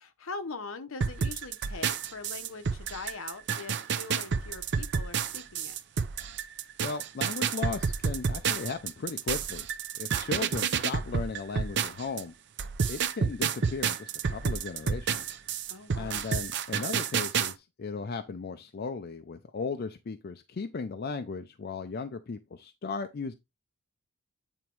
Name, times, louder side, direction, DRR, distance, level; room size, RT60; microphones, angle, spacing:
voice 1, 0.0-5.8 15.7-16.3, left 4 dB, 65° left, 0.8 m, -42 dB
sound 1, 1.0-12.2 12.6-17.5, right 6 dB, 50° right, 0.5 m, -30 dB
voice 2, 6.8-9.7 10.0-12.3 12.9-15.4 15.9-23.3, left 4 dB, 45° left, 0.4 m, -36 dB
8.8 x 3.0 x 4.6 m
head